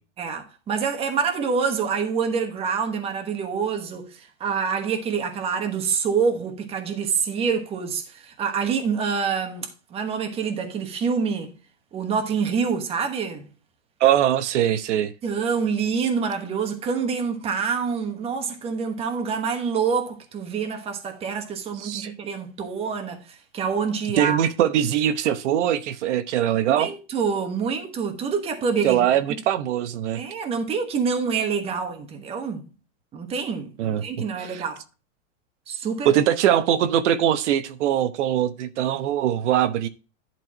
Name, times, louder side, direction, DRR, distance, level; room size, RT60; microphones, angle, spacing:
voice 1, 0.2-11.5 11.9-13.5 15.2-24.4 26.7-29.0 30.1-32.7 33.1-34.8 35.7-36.2, right 6 dB, 15° right, 1.1 m, -26 dB
voice 2, 14.0-15.1 21.8-22.1 24.2-26.9 28.8-30.2 33.8-34.0 34.4-34.6 36.0-39.9, right 11 dB, 70° right, 1.0 m, -22 dB
11.0 x 4.6 x 4.4 m
supercardioid pair, 170°, 36 cm